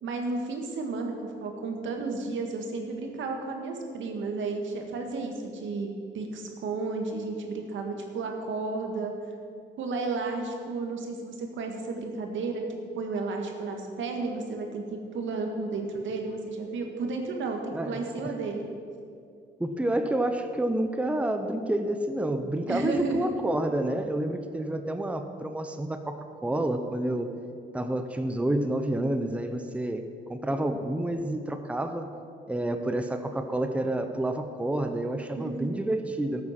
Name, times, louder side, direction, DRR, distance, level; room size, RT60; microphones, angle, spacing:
voice 1, 0.0-5.9 6.1-9.1 9.8-12.6 13.0-18.7 22.7-23.4 35.4-35.8, right 3 dB, 75° right, 3 dB, 1.9 m, -32 dB
voice 2, 17.7-18.3 19.6-27.3 27.7-30.0 30.3-32.1 32.5-36.4, right 1 dB, 5° right, 6 dB, 0.8 m, -29 dB
14.0 x 8.4 x 6.0 m, 2.4 s
cardioid pair, 90°, 20 cm